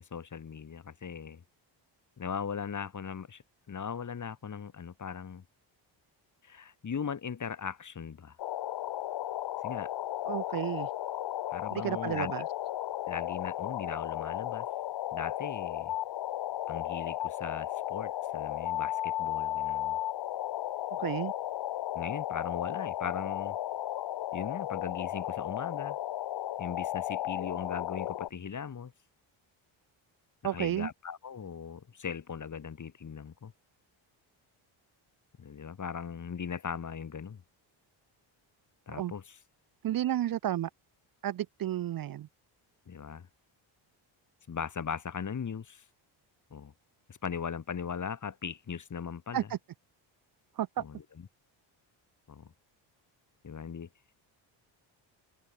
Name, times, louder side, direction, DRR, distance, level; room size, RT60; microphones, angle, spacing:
voice 1, 0.0-1.4 2.2-3.4 3.7-5.4 6.4-8.4 9.6-9.9 11.5-12.3 13.1-14.7 15.1-15.9 16.7-20.0 21.9-23.6 24.3-26.0 26.6-28.9 30.5-33.5 35.4-37.4 38.9-39.4 42.9-43.3 44.5-45.8 46.5-46.7 47.1-49.5 50.8-51.0 52.3-52.5 53.4-53.9, left 7 dB, 40° left, 2.9 m, -39 dB
sound 1, 8.4-28.3, left 13 dB, 55° left, 0.9 m, -35 dB
voice 2, 10.3-10.9 11.7-12.4 20.9-21.3 30.4-30.9 38.9-39.1 39.8-40.7 41.2-42.3 49.3-49.6 50.6-50.8, right 12 dB, 45° right, 0.6 m, -32 dB
cardioid pair, 105°, 48 cm